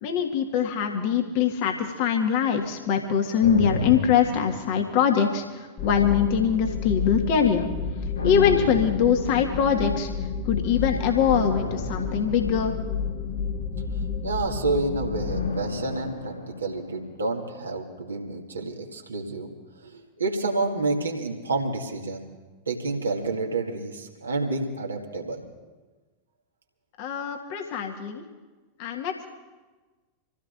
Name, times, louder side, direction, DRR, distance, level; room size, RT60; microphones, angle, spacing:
voice 1, 0.0-7.7 8.2-12.7 27.0-28.2 28.8-29.3, left 8 dB, 45° left, 3 dB, 1.7 m, -23 dB
sound 1, 3.4-5.3 5.8-7.1 8.1-9.9 11.3-13.7 15.3-17.4 17.7-17.8, left 3 dB, 70° left, 5.4 m, -33 dB
sound 2, 5.8-15.5, left 5 dB, 30° left, 1.5 m, -31 dB
voice 2, 14.2-19.5 19.8-22.3 22.7-25.4, right 3 dB, 75° right, 0 dB, 2.0 m, -29 dB
27.5 x 15.5 x 2.6 m, 1.3 s
figure-of-eight pair, 90°, 0 cm